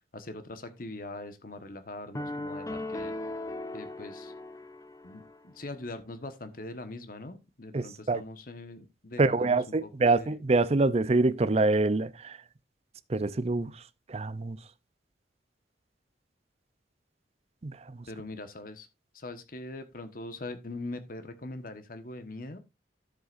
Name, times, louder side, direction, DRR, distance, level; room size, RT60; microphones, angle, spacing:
voice 1, 0.1-3.1 3.7-4.3 5.0-10.4 18.1-18.9 19.1-22.6, left 2 dB, 50° left, 1.3 m, -42 dB
sound 1, 2.1-5.4, left 2 dB, 20° left, 0.8 m, -38 dB
voice 2, 7.7-8.2 9.2-12.4 13.1-13.7 14.1-14.6 17.6-17.8, right 3 dB, 35° right, 0.5 m, -25 dB
12.5 x 7.9 x 2.5 m
head